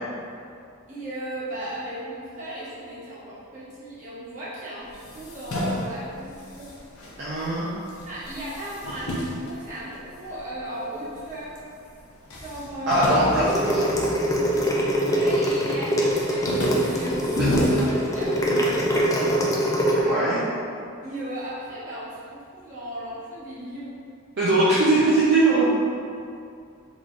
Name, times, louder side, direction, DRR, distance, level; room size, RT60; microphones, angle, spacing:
voice 1, 0.9-6.7 8.1-11.6 12.4-13.3 15.0-19.6 21.0-24.0, right 1 dB, 35° right, -10 dB, 1.1 m, -36 dB
sound 1, 4.9-7.6 7.9-10.4 11.0-11.7 11.9-12.0 12.3-14.9 15.3-15.7 16.1-18.7, left 1 dB, 80° left, 0.7 m, -30 dB
voice 2, 7.2-7.7 12.9-13.9 17.4-17.5 18.4-18.6 20.0-20.4 24.4-25.7, right 2 dB, 50° right, -10 dB, 0.6 m, -21 dB
sound 2, 13.4-20.0, equal, 15° left, 0.3 m, -23 dB
3.9 x 3.3 x 2.5 m, 2.4 s
head